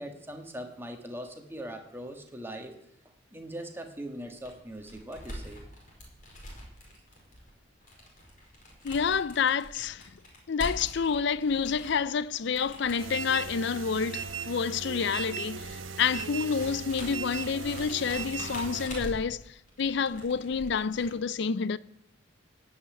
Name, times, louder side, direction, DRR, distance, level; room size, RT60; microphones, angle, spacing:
voice 1, 0.0-2.7 3.3-5.6, right 1 dB, 10° right, 1.6 m, -41 dB
sound 1, 4.4-21.1, equal, 40° left, 4.6 m, -44 dB
voice 2, 8.8-10.1 10.5-21.8, left 6 dB, 60° left, 0.5 m, -29 dB
sound 2, 13.0-18.9, right 6 dB, 75° right, 1.1 m, -38 dB
16.0 x 5.7 x 9.5 m
head